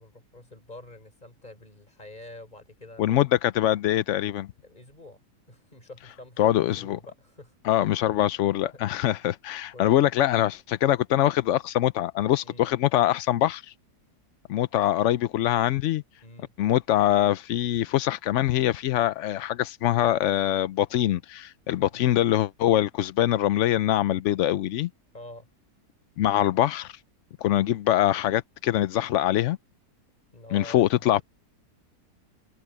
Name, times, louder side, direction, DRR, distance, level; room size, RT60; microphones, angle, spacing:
voice 1, 0.0-3.2 4.6-5.2 5.5-7.5 8.7-8.8 9.7-10.1 12.4-12.7 16.2-16.5 21.9-22.1 25.1-25.5 30.3-31.2, left 2 dB, 25° left, 4.3 m, -46 dB
voice 2, 3.0-4.5 6.4-7.0 7.6-13.7 14.5-16.0 16.6-24.9 26.2-26.9 27.4-29.6 30.5-31.2, left 13 dB, 70° left, 0.7 m, -23 dB
omnidirectional pair, 1.8 m